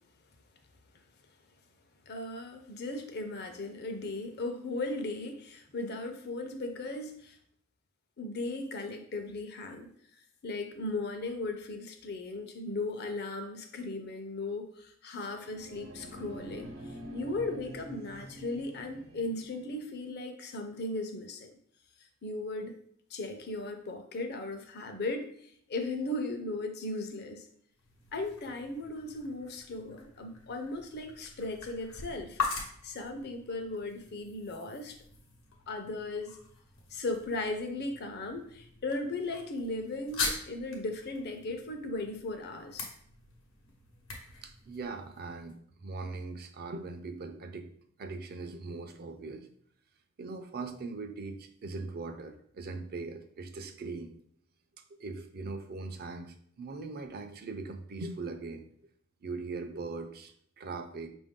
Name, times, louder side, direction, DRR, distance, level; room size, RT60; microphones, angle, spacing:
voice 1, 2.1-7.4 8.2-9.9 10.4-21.5 22.2-22.8 23.1-27.4 28.1-32.4 32.8-35.0 35.7-36.4 36.9-42.9, left 2 dB, 55° left, 6 dB, 0.6 m, -37 dB
sound 1, 15.1-19.8, equal, 90° right, 0.9 m, -46 dB
sound 2, 27.7-45.5, left 4 dB, 90° left, 1.1 m, -42 dB
voice 2, 44.4-47.7 48.0-49.5 50.2-54.1 55.0-58.6 59.2-61.1, right 3 dB, 50° right, 7 dB, 0.5 m, -40 dB
5.3 x 2.6 x 3.6 m, 0.62 s
head